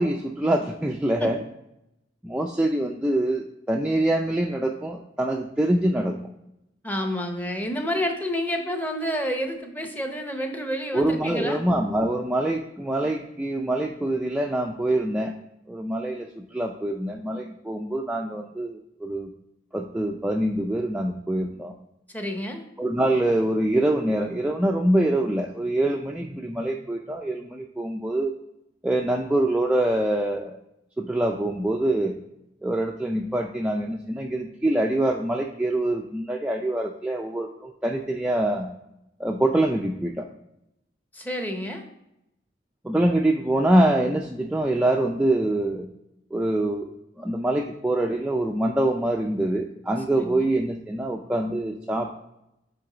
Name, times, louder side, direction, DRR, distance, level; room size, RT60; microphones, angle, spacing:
voice 1, 0.0-1.4 2.2-6.2 10.9-15.3 15.7-19.3 19.7-21.7 22.8-28.3 28.8-30.6 31.0-32.1 32.6-38.7 39.2-40.3 42.8-45.9 46.3-52.1, right 1 dB, 5° right, 1 dB, 0.3 m, -25 dB
voice 2, 6.8-11.6 22.1-22.6 41.1-41.8 50.2-50.5, equal, 10° left, 4 dB, 0.7 m, -29 dB
7.8 x 3.9 x 3.8 m, 0.86 s
head